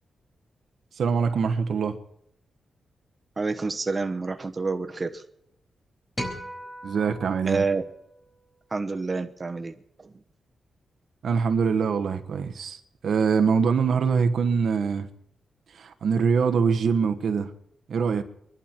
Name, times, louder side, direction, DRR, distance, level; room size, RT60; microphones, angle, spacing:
voice 1, 1.0-2.0 6.8-7.7 11.2-15.1 15.7-17.5 17.9-18.2, right 6 dB, 75° right, 1.2 m, -24 dB
voice 2, 3.4-5.1 7.5-7.8 8.7-9.7, right 4 dB, 30° right, 1.1 m, -28 dB
sound 1, 6.2-8.6, equal, 15° left, 3.9 m, -38 dB
24.5 x 11.5 x 4.4 m
cardioid pair, 95°, 0 cm